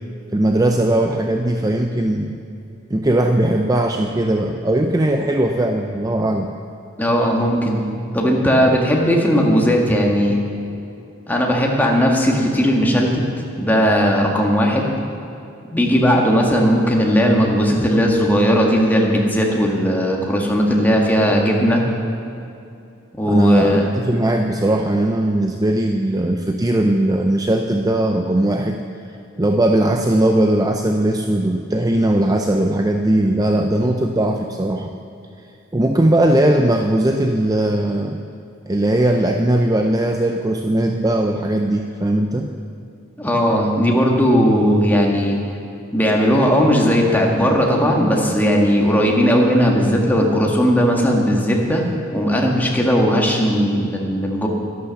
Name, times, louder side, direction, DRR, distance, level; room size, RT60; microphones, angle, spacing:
voice 1, 0.3-2.3 2.9-6.5 23.3-28.8 29.4-34.9 35.7-38.2 38.7-42.5, right 1 dB, 20° right, 4 dB, 0.5 m, -19 dB
voice 2, 7.0-7.8 8.1-10.4 11.3-13.2 13.6-14.9 15.7-21.9 23.2-23.9 43.2-45.4 45.9-51.8 52.1-54.5, equal, 10° left, -1 dB, 1.7 m, -17 dB
12.5 x 11.5 x 7.1 m, 2.6 s
head